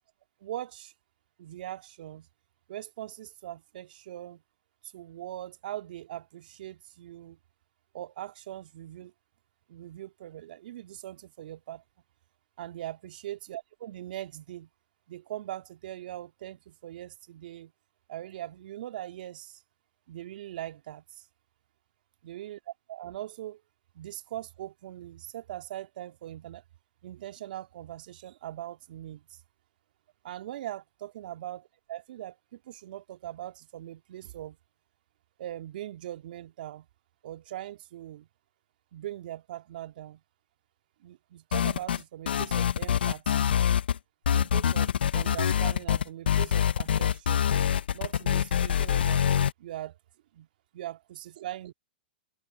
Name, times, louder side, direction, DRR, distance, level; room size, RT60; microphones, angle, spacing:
voice 1, 0.4-0.9 1.4-2.3 2.7-4.4 4.9-7.4 7.9-9.1 9.7-11.8 12.6-14.7 15.1-17.7 18.1-19.6 20.1-21.2 22.2-22.6 22.9-23.6 24.0-26.6 27.0-29.4 30.2-34.6 35.4-36.9 37.2-38.3 38.9-40.2 41.0-43.5 44.3-47.5 47.9-49.3 49.6-50.0 50.3-50.5 50.7-51.7, right 13 dB, 60° right, 1.9 m, -41 dB
sound 1, 41.5-42.0 42.3-44.0 44.3-49.5, left 9 dB, 75° left, 0.6 m, -25 dB
hypercardioid pair, 110°, 5 cm